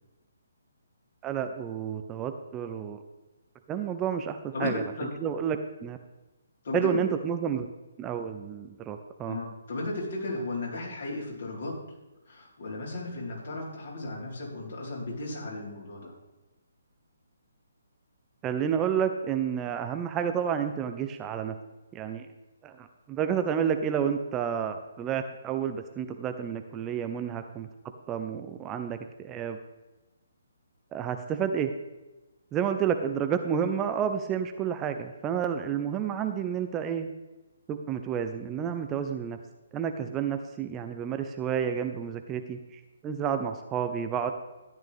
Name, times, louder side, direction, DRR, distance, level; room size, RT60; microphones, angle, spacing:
voice 1, 1.2-3.0 3.7-4.8 5.2-6.0 6.7-7.7 8.0-9.4 18.4-21.6 21.9-22.3 22.6-27.7 28.1-29.6 30.9-31.7 32.5-37.1 37.7-39.4 39.7-44.3, right 8 dB, 15° right, 7 dB, 0.6 m, -30 dB
voice 2, 4.5-5.1 6.6-6.9 9.3-11.7 12.3-16.1, left 2 dB, 55° left, -3 dB, 4.1 m, -35 dB
13.5 x 10.5 x 3.5 m, 1.1 s
figure-of-eight pair, 135°, 0 cm